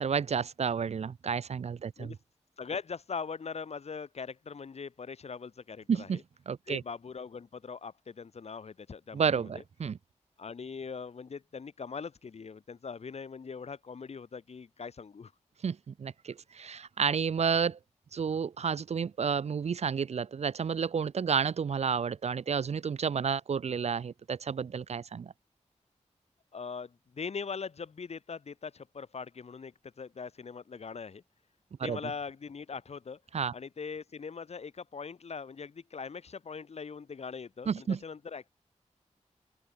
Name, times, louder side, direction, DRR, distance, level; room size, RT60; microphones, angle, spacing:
voice 1, 0.0-2.2 5.9-6.2 6.5-6.8 9.1-10.0 15.6-17.8 18.1-25.3 31.8-32.0 33.3-33.5 37.7-38.0, right 6 dB, 65° right, 0.7 m, -31 dB
voice 2, 2.6-6.2 6.7-9.6 10.4-15.3 26.5-31.2 31.8-33.2 33.5-38.5, left 5 dB, 60° left, 2.2 m, -41 dB
open air
wide cardioid pair, 130°, 12 cm